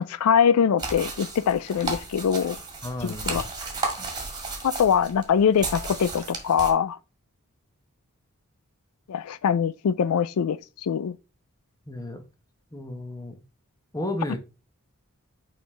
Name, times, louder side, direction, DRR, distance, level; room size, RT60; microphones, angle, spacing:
voice 1, 0.0-2.6 3.0-3.4 4.8-7.0 9.1-11.1, left 7 dB, 80° left, 0.4 m, -23 dB
sound 1, 0.8-6.7, right 3 dB, 20° right, 2.0 m, -34 dB
voice 2, 2.8-3.5 4.0-4.1 11.9-12.2 12.7-13.4 13.9-14.4, left 1 dB, 15° left, 1.1 m, -33 dB
6.3 x 5.0 x 3.3 m
head